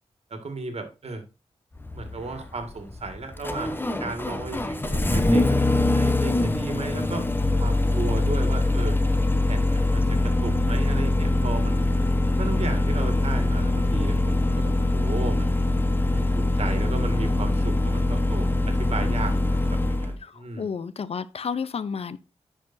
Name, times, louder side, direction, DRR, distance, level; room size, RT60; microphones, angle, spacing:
voice 1, 0.3-1.2 1.9-7.3 7.6-9.0 9.4-11.9 12.4-15.5 16.1-20.7, right 3 dB, 65° right, 1.9 m, -35 dB
Engine starting, 1.8-20.2, left 2 dB, 20° left, 0.9 m, -23 dB
voice 2, 20.2-22.2, left 6 dB, 60° left, 0.6 m, -31 dB
10.5 x 5.0 x 2.6 m
cardioid pair, 70°, 11 cm